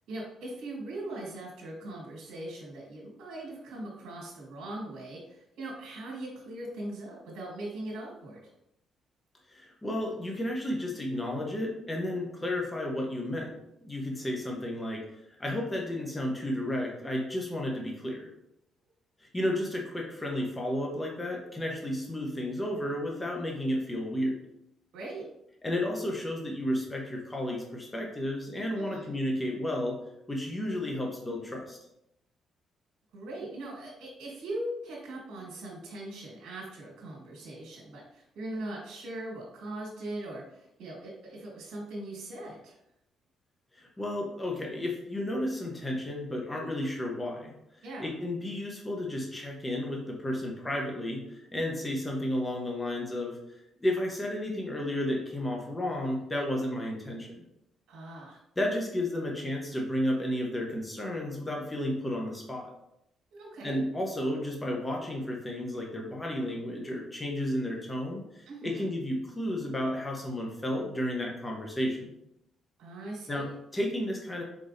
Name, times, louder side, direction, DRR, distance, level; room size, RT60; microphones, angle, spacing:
voice 1, 0.0-8.4 24.9-25.2 28.8-29.2 33.1-42.8 47.8-48.1 57.9-58.4 63.3-63.7 68.5-68.8 72.8-73.5, right 1 dB, 80° right, -4 dB, 1.6 m, -40 dB
voice 2, 9.5-13.5 13.8-15.0 15.4-18.3 19.2-24.4 25.6-30.0 30.3-31.8 43.7-47.5 48.0-53.4 53.8-57.4 58.6-62.7 63.6-72.0 73.3-74.4, left 1 dB, 15° left, -1 dB, 1.0 m, -32 dB
4.4 x 4.1 x 2.7 m, 0.81 s
cardioid pair, 90°, 0 cm